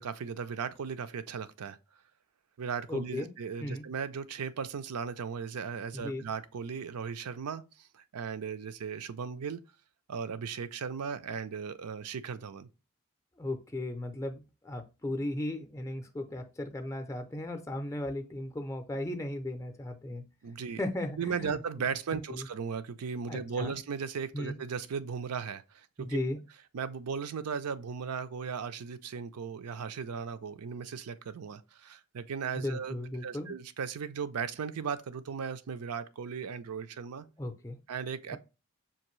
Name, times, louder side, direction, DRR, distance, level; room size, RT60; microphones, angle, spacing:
voice 1, 0.0-1.8 2.6-7.6 7.9-9.6 10.1-12.7 20.4-20.8 21.2-26.2 26.7-32.9 33.2-37.3 37.9-38.4, right 6 dB, 90° right, 0.5 m, -37 dB
voice 2, 2.9-3.3 3.6-3.8 5.9-6.3 13.4-20.2 20.8-21.6 22.3-22.5 23.3-23.7 24.3-24.6 26.0-26.4 32.6-33.5 37.4-37.8 38.3-38.4, left 1 dB, 15° left, 0.4 m, -36 dB
5.7 x 2.6 x 3.0 m
head